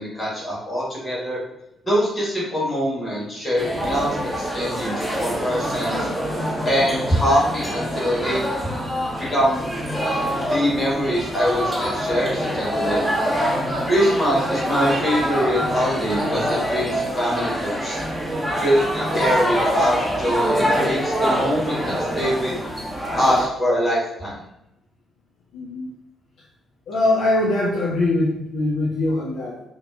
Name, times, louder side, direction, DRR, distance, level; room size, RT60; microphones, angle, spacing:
voice 1, 0.0-1.4 1.9-6.1 6.6-8.4 9.3-9.7 10.5-13.1 13.8-18.0 18.6-22.6 23.2-24.4, equal, 30° left, -6 dB, 1.2 m, -23 dB
sound 1, 3.6-23.5, equal, 5° right, 0.6 m, -25 dB
voice 2, 25.5-25.9 26.9-29.6, left 2 dB, 60° left, -4 dB, 0.3 m, -22 dB
2.6 x 2.1 x 2.3 m, 0.86 s
figure-of-eight pair, 40°, 0 cm